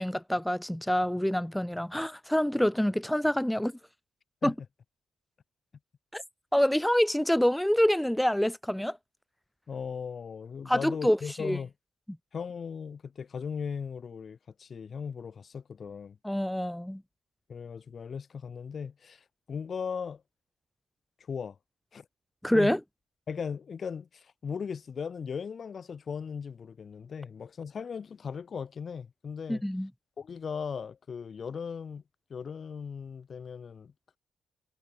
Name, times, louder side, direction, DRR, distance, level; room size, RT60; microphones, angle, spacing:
voice 1, 0.0-3.7 4.4-4.5 6.1-6.2 6.5-9.0 10.7-11.6 16.2-17.0 22.4-22.8 29.5-29.9, equal, 5° left, 1.0 m, -26 dB
voice 2, 9.7-11.7 12.3-16.2 17.5-20.2 21.2-21.6 21.9-22.1 22.5-22.7 23.3-29.6 30.2-32.0 32.3-34.2, left 6 dB, 45° left, 6.2 m, -38 dB
cardioid pair, 90°, 0 cm